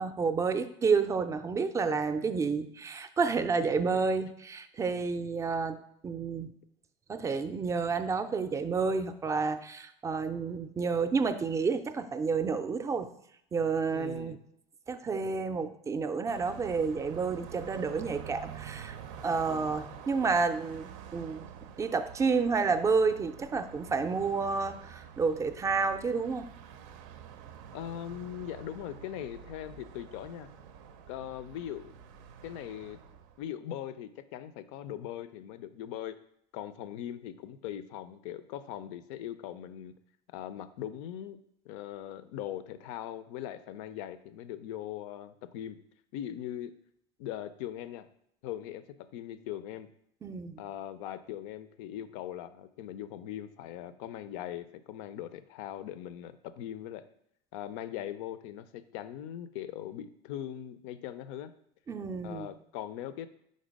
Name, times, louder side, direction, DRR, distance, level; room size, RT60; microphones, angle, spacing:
voice 1, 0.0-5.8 6.0-6.5 7.1-13.1 13.5-14.4 14.9-19.0 19.2-21.4 21.8-26.5 50.2-50.6 61.9-62.5, right 5 dB, 20° right, 11 dB, 0.4 m, -30 dB
voice 2, 3.7-4.0 13.9-14.4 19.5-19.9 27.7-30.5 31.1-31.9 32.4-33.0 33.4-36.2 36.5-39.9 40.3-41.4 41.7-45.8 46.1-46.7 47.2-48.1 48.4-48.8 49.1-49.9 50.6-57.0 57.5-61.5 62.2-63.3, left 11 dB, 85° left, 13 dB, 0.5 m, -40 dB
Car passing by, 16.3-33.5, right 8 dB, 90° right, 0.5 m, -48 dB
5.2 x 4.0 x 5.1 m, 0.72 s
cardioid pair, 135°, 15 cm